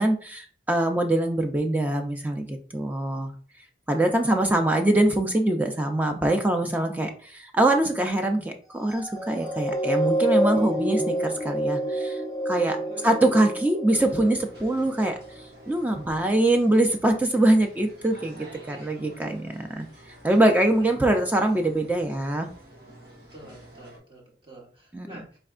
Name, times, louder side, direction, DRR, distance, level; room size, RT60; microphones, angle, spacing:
voice 1, 0.0-3.3 3.9-12.8 13.0-15.2 15.7-22.5 24.9-25.2, right 1 dB, 10° right, 4 dB, 0.3 m, -23 dB
voice 2, 4.2-4.9 12.7-13.1 18.7-19.0 20.8-20.9 23.3-25.4, right 1 dB, 30° right, -2 dB, 1.1 m, -47 dB
sound 1, 8.8-15.5 16.1-16.2, right 1 dB, 15° left, 0.7 m, -28 dB
sound 2, 13.9-24.0, right 1 dB, 60° right, 1.7 m, -49 dB
4.3 x 3.2 x 2.4 m, 0.42 s
head